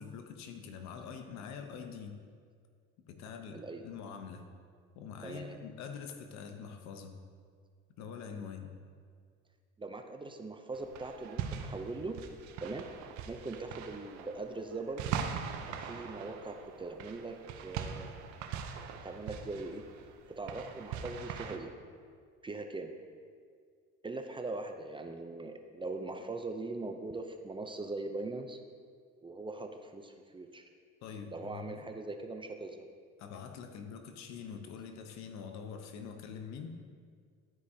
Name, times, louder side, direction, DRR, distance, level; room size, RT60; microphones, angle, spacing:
voice 1, 0.0-2.2 3.1-4.5 4.9-7.3 8.0-8.8 31.0-31.8 33.2-36.7, left 6 dB, 70° left, 6 dB, 0.9 m, -45 dB
voice 2, 5.2-5.6 9.8-12.2 12.6-12.9 13.3-15.2 15.8-18.2 19.0-19.8 20.4-21.7 22.4-22.9 24.0-28.6 29.2-30.6 31.3-32.9, right 3 dB, 15° right, 5 dB, 0.5 m, -41 dB
sound 1, 10.7-21.6, right 7 dB, 75° right, 0.7 m, -41 dB
12.5 x 4.9 x 2.8 m, 2.1 s
supercardioid pair, 90°, 29 cm